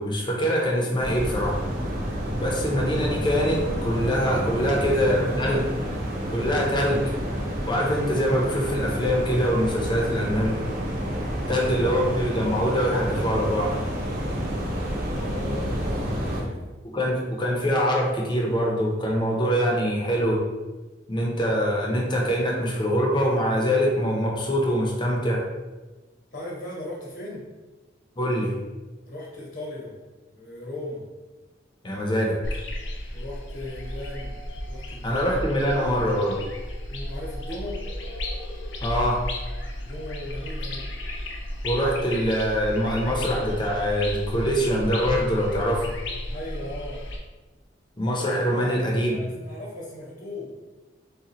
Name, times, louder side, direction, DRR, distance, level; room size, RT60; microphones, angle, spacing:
voice 1, 0.0-1.6 2.4-5.6 6.3-7.1 7.7-10.6 11.5-13.7 16.8-20.4 21.1-25.4 28.2-28.5 31.8-32.6 35.0-36.4 38.8-39.2 41.6-46.0 48.0-49.1, equal, 25° left, -2 dB, 0.8 m, -24 dB
sound 1, 1.0-16.4, equal, 50° right, 1.1 m, -29 dB
voice 2, 4.6-5.5 15.1-16.7 26.3-27.5 29.1-30.0 30.3-31.1 33.1-34.4 34.7-35.4 36.9-37.9 39.8-40.9 46.3-47.1 48.5-50.5, left 1 dB, 60° left, -4 dB, 1.1 m, -37 dB
sound 2, 32.4-47.2, left 1 dB, 85° left, 0.7 m, -34 dB
6.7 x 2.4 x 3.0 m, 1.2 s
head